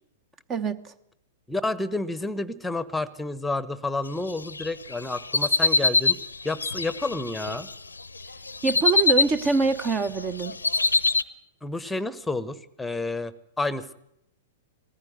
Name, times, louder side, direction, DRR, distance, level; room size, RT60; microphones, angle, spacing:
voice 1, 0.5-0.9 8.6-10.6, right 4 dB, 25° right, 15 dB, 0.9 m, -24 dB
voice 2, 1.5-6.2 6.4-7.7 11.6-13.9, left 2 dB, 5° left, 17 dB, 1.0 m, -30 dB
sound 1, 4.5-7.7 8.2-9.9 10.2-11.2, left 3 dB, 85° left, 0.7 m, -24 dB
19.5 x 15.0 x 9.4 m, 0.80 s
figure-of-eight pair, 105°, 0 cm